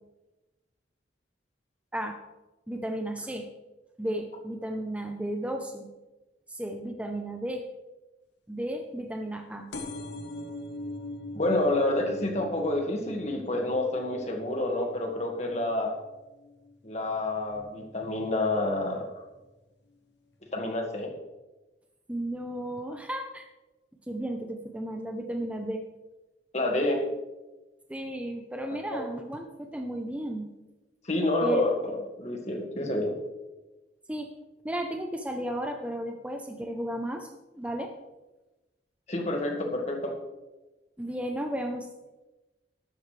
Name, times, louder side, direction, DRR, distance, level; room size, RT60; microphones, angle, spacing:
voice 1, 2.7-3.5 4.0-5.9 6.5-7.6 8.5-9.7 22.1-23.5 24.1-25.8 27.9-30.5 31.4-31.7 34.1-34.3 34.6-37.3 37.5-37.9 41.0-41.9, right 1 dB, 5° right, 3 dB, 0.7 m, -34 dB
sound 1, 9.7-17.0 17.4-17.9 18.8-18.9 19.1-19.2 19.4-19.5, left 2 dB, 75° left, 1.2 m, -42 dB
voice 2, 11.3-15.9 16.8-19.1 20.5-21.1 26.5-27.0 28.9-29.0 31.1-33.1 39.1-40.1, left 2 dB, 40° left, 2 dB, 1.9 m, -28 dB
12.5 x 12.0 x 3.3 m, 1.1 s
head